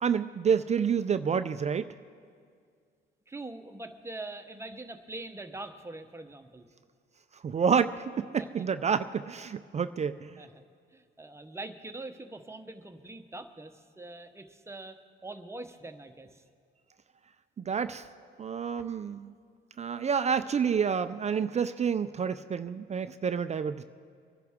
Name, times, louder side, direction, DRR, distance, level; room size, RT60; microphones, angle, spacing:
voice 1, 0.0-1.8 7.4-10.3 17.6-18.0 18.4-19.3 19.8-23.8, right 6 dB, 35° right, 11 dB, 0.4 m, -28 dB
voice 2, 3.3-6.7 8.4-8.5 10.4-10.6 10.9-16.4 17.8-18.0, right 2 dB, 15° right, 7 dB, 0.9 m, -43 dB
24.0 x 10.5 x 3.6 m, 2.1 s
cardioid pair, 90°, 20 cm